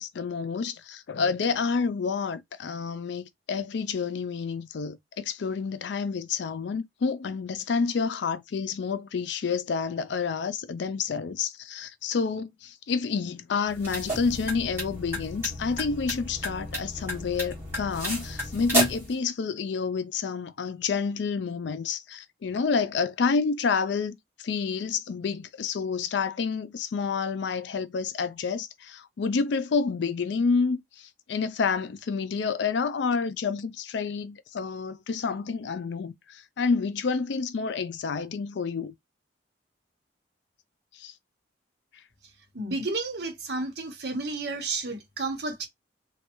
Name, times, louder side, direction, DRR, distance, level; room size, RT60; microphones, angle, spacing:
voice 1, 0.0-38.9 40.9-41.1, left 5 dB, 70° left, 0.4 m, -29 dB
sound 1, 13.7-19.1, right 1 dB, 10° right, 1.4 m, -32 dB
voice 2, 42.5-45.7, right 3 dB, 60° right, 1.0 m, -31 dB
3.2 x 2.3 x 3.0 m
head